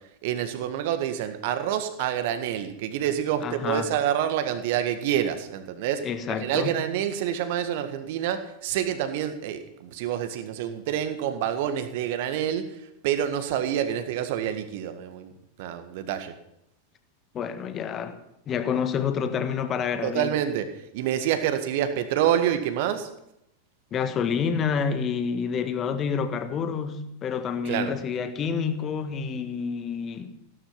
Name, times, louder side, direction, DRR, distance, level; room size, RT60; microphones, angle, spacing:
voice 1, 0.2-6.0 6.3-12.8 13.0-15.3 15.6-16.3 20.0-20.7 20.9-23.1 27.7-27.9, right 10 dB, 50° right, 1.7 m, -27 dB
voice 2, 3.4-3.9 6.0-6.8 17.3-18.2 18.5-20.3 23.9-30.3, left 6 dB, 30° left, 1.7 m, -28 dB
16.0 x 12.5 x 5.9 m
figure-of-eight pair, 90°, 0 cm